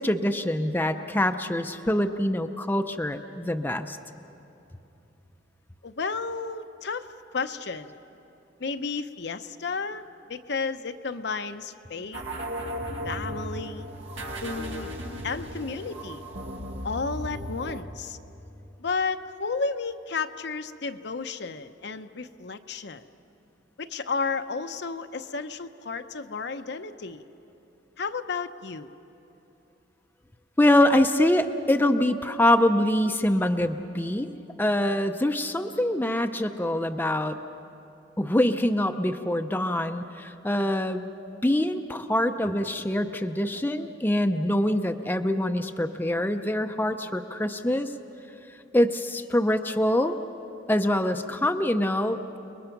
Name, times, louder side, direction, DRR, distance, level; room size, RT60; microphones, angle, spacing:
voice 1, 0.0-4.0 30.6-34.3 34.6-37.4 38.2-41.0 41.4-47.9 48.7-50.2 50.7-52.4, left 1 dB, 10° left, 6 dB, 0.6 m, -24 dB
voice 2, 5.8-7.1 7.3-8.0 8.6-10.0 10.3-12.2 13.0-13.9 14.4-14.9 15.2-16.2 16.8-18.2 18.8-23.0 23.8-27.2 28.0-28.9, left 4 dB, 60° left, 8 dB, 0.8 m, -32 dB
sound 1, 12.1-17.8, equal, 75° right, 2.1 m, -36 dB
30.0 x 21.0 x 5.9 m, 2.9 s
head